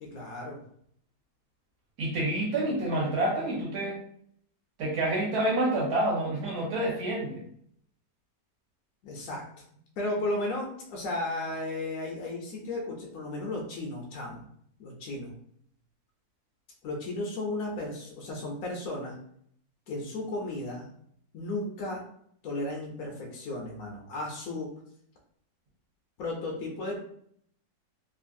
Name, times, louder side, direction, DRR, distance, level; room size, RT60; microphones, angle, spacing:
voice 1, 0.0-0.6 9.0-9.4 9.7-14.4 14.8-15.3 16.8-19.2 19.9-20.9 21.3-22.0 22.4-24.7 26.2-27.0, left 2 dB, 65° left, -1 dB, 1.0 m, -34 dB
voice 2, 2.0-4.0 4.8-7.4, right 1 dB, 65° right, -2 dB, 1.3 m, -28 dB
3.1 x 2.5 x 2.6 m, 0.66 s
omnidirectional pair, 1.8 m